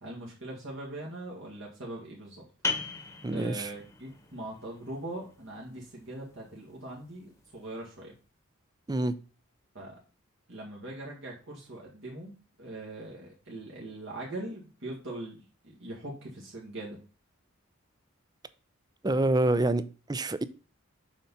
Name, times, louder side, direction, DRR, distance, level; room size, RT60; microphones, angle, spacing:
voice 1, 0.0-2.4 3.3-8.1 9.7-10.0 10.5-12.3 12.6-17.0, right 1 dB, 60° right, 2.0 m, -41 dB
sound 1, 2.6-8.0, left 4 dB, 15° left, 1.1 m, -40 dB
voice 2, 3.2-3.7 8.9-9.2 19.0-20.4, right 2 dB, 20° right, 0.4 m, -27 dB
7.3 x 5.5 x 4.2 m
head